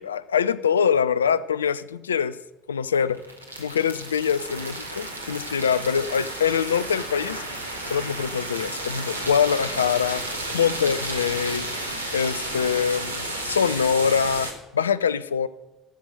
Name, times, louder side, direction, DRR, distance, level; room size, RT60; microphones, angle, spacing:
voice 1, 0.0-2.4 2.7-3.2 3.6-7.4 7.8-10.2 10.5-11.7 12.1-15.5, left 7 dB, 80° left, 17 dB, 0.4 m, -24 dB
sound 1, 3.0-14.5, right 1 dB, 90° right, 1.6 m, -32 dB
14.5 x 7.7 x 6.6 m, 1.0 s
figure-of-eight pair, 60°, 0 cm